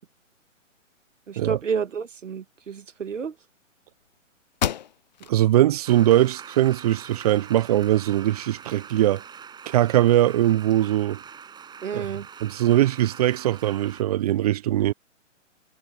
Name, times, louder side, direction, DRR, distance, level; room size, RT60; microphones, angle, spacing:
voice 1, 1.3-3.3 11.8-12.3, right 6 dB, 70° right, 2.1 m, -30 dB
sound 1, 4.0-4.1 4.5-5.4 5.9-6.0 6.5-7.4, left 9 dB, 35° left, 0.5 m, -31 dB
voice 2, 5.3-9.2 9.7-11.2 11.9-12.1 12.4-14.9, right 13 dB, 30° right, 0.8 m, -21 dB
sound 2, 5.8-14.0, right 7 dB, 10° right, 7.0 m, -43 dB
figure-of-eight pair, 135°, 39 cm